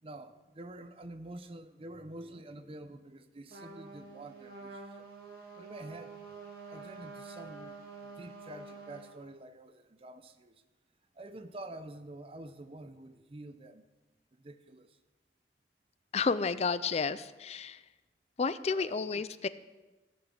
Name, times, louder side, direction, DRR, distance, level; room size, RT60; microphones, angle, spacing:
voice 1, 0.0-5.1 5.6-6.2 6.7-7.8 8.0-10.6 11.1-13.9 14.3-15.0 18.7-19.2, right 1 dB, 30° right, 0.6 m, -47 dB
Trumpet, 3.5-9.1, right 4 dB, 55° right, 2.6 m, -48 dB
voice 2, 16.1-17.8 18.4-19.5, left 4 dB, 35° left, 0.4 m, -31 dB
15.0 x 6.1 x 7.1 m
head